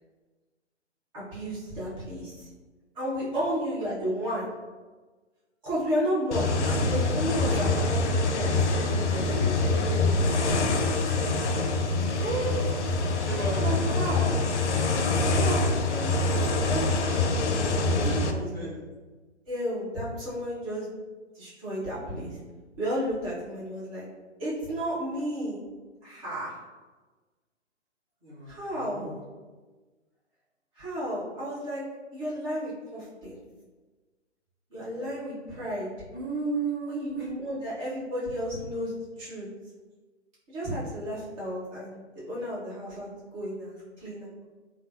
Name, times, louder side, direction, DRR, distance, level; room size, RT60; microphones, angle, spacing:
voice 1, 1.1-2.5 2.9-4.5 5.6-10.7 13.6-14.3 15.2-18.7 19.5-20.9 21.3-22.4 22.8-24.0 24.4-25.6 26.0-26.5 28.5-29.1 30.8-31.8 32.1-33.4 34.7-35.9 36.9-39.5 40.5-44.3, equal, 30° right, -9 dB, 1.3 m, -33 dB
sound 1, 6.3-18.3, left 3 dB, 75° left, 0.5 m, -25 dB
voice 2, 7.0-8.0 12.1-14.4 15.1-15.3 17.5-18.8 28.2-29.2 35.4-35.6 36.1-37.3, right 3 dB, 5° right, -22 dB, 0.4 m, -35 dB
3.2 x 2.3 x 2.6 m, 1.3 s
figure-of-eight pair, 130°, 36 cm